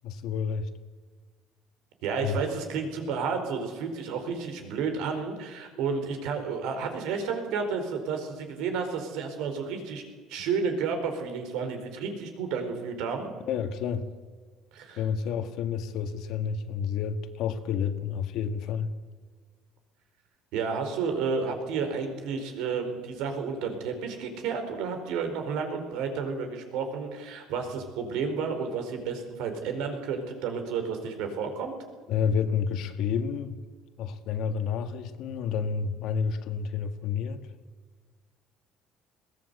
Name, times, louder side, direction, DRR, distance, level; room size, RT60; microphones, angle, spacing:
voice 1, 0.0-0.7 2.2-2.4 13.5-14.1 15.0-18.9 32.1-33.6 34.0-37.5, left 7 dB, 60° left, 8 dB, 1.7 m, -30 dB
voice 2, 2.0-10.0 10.3-13.3 14.7-15.0 20.5-31.8, right 5 dB, 75° right, 6 dB, 4.5 m, -31 dB
21.5 x 17.0 x 8.1 m, 1.5 s
cardioid pair, 150°, 0 cm